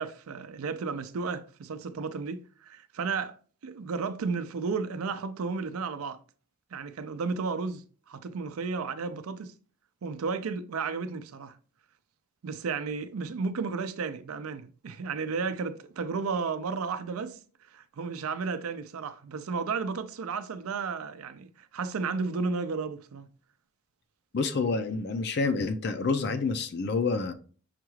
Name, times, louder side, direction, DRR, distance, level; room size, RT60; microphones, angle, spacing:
voice 1, 0.0-3.4 3.6-6.2 6.7-9.5 10.0-11.6 12.4-17.4 17.7-23.3, right 4 dB, 85° right, 0.4 m, -33 dB
voice 2, 24.3-27.3, left 4 dB, 50° left, 0.4 m, -28 dB
5.8 x 2.3 x 3.1 m
head